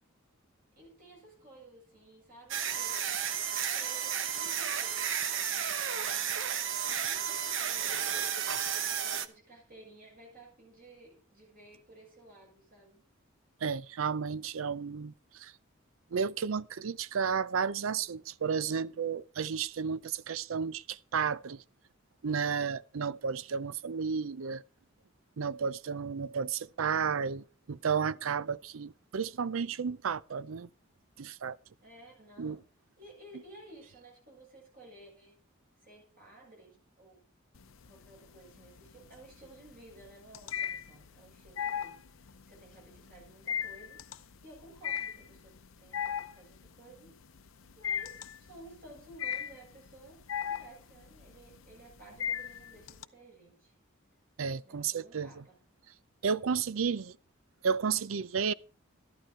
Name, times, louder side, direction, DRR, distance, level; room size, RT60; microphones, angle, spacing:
voice 1, 0.7-3.2 3.7-8.1 8.8-13.0 31.8-32.6 33.0-35.4 35.8-37.3 37.8-42.1 42.5-44.1 44.4-47.1 47.7-53.7 54.6-55.6 56.3-56.6, right 1 dB, 45° right, 7.9 m, -55 dB
sound 1, 2.5-9.3, right 8 dB, 65° right, 1.0 m, -32 dB
voice 2, 13.6-15.5 16.1-21.6 22.2-24.6 25.4-30.7 31.2-31.6 32.4-32.6 54.4-55.4 56.2-57.2 57.6-58.5, right 6 dB, 85° right, 0.5 m, -32 dB
sound 2, 37.6-38.2 38.6-53.0, left 8 dB, 85° left, 0.7 m, -37 dB
13.0 x 11.5 x 4.4 m
head